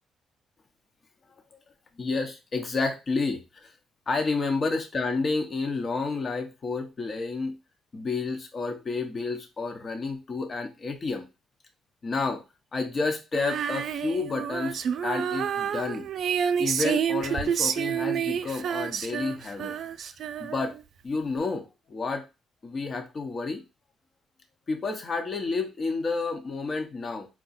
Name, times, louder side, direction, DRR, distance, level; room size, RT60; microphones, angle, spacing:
voice 1, 2.0-3.7 4.1-7.6 7.9-11.3 12.0-12.4 12.7-16.1 16.6-19.7 20.4-20.7 21.0-22.2 22.6-23.6 24.7-27.3, left 3 dB, 40° left, 4 dB, 0.8 m, -30 dB
Female singing, 13.3-20.8, right 8 dB, 65° right, 0.4 m, -29 dB
4.8 x 2.2 x 4.1 m, 0.27 s
cardioid pair, 90°, 0 cm